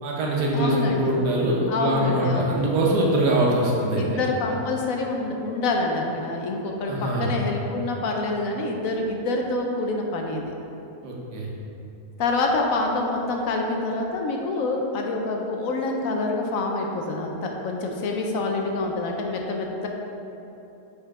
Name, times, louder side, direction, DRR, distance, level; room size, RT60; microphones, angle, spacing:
voice 1, 0.0-4.2 6.9-7.3 11.0-11.5, right 1 dB, 85° right, -3 dB, 1.5 m, -23 dB
voice 2, 0.5-1.2 1.7-2.6 3.9-10.5 12.2-19.9, left 2 dB, 70° left, 1 dB, 1.0 m, -26 dB
5.5 x 4.4 x 4.8 m, 2.9 s
omnidirectional pair, 1.6 m